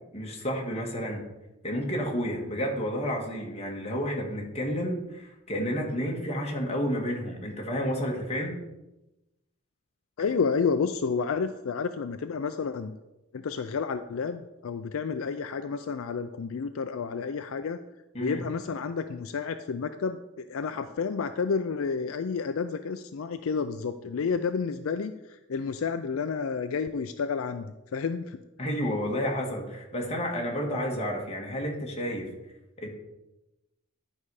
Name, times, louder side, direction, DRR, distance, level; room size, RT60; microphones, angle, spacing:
voice 1, 0.1-1.2 1.6-8.5 18.1-18.4 28.6-32.3 32.8-32.9, equal, 30° left, 0 dB, 1.8 m, -31 dB
voice 2, 10.2-12.9 13.3-17.8 18.2-28.4, left 5 dB, 70° left, 9 dB, 0.4 m, -30 dB
11.0 x 5.5 x 4.8 m, 0.97 s
head